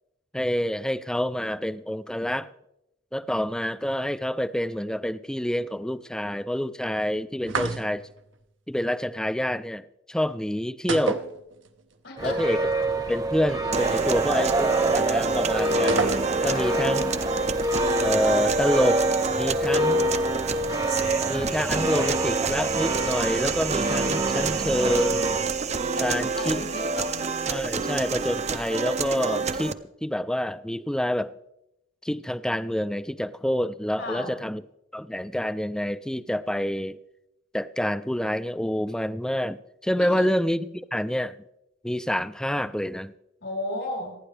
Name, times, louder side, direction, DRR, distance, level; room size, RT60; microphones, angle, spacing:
voice 1, 0.3-2.5 3.1-8.1 8.7-11.2 12.2-12.7 13.1-16.1 16.4-17.1 18.0-19.0 19.4-20.1 21.3-25.2 26.0-26.6 27.5-31.4 32.0-34.6 34.9-37.0 37.5-41.3 41.8-43.1, equal, 5° left, 0.4 m, -27 dB
sound 1, 7.5-8.2 10.9-11.9 12.2-12.3 15.9-16.7, right 4 dB, 80° right, 1.0 m, -29 dB
voice 2, 12.0-12.4 16.4-16.8 26.0-27.1 34.0-34.5 40.0-40.3 43.4-44.2, left 2 dB, 90° left, 6.0 m, -34 dB
sound 2, 12.2-25.5, right 1 dB, 20° right, 0.9 m, -27 dB
sound 3, 13.7-29.7, right 4 dB, 35° right, 0.6 m, -27 dB
27.0 x 9.8 x 3.4 m
head